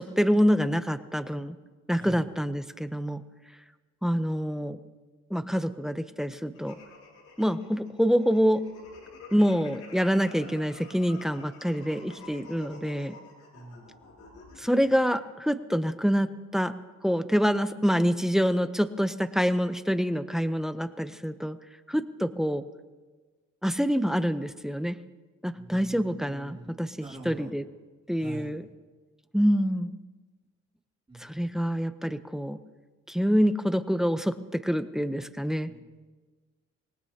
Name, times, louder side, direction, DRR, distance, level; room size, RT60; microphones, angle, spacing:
voice 1, 0.0-1.6 1.9-3.2 4.0-4.8 5.3-6.7 7.4-8.6 9.3-13.1 14.6-16.7 17.0-21.6 21.9-22.6 23.6-25.0 25.4-27.7 28.1-28.6 29.3-30.0 31.2-32.6 33.1-35.7, equal, ahead, 11 dB, 0.7 m, -26 dB
sound 1, 6.5-15.2, left 4 dB, 85° left, 6.4 m, -49 dB
voice 2, 13.5-14.0 25.5-27.5 28.2-28.5 31.1-31.7 35.6-35.8, right 2 dB, 20° right, -3 dB, 3.0 m, -45 dB
25.0 x 19.0 x 2.9 m, 1.3 s
cardioid pair, 90°, 30 cm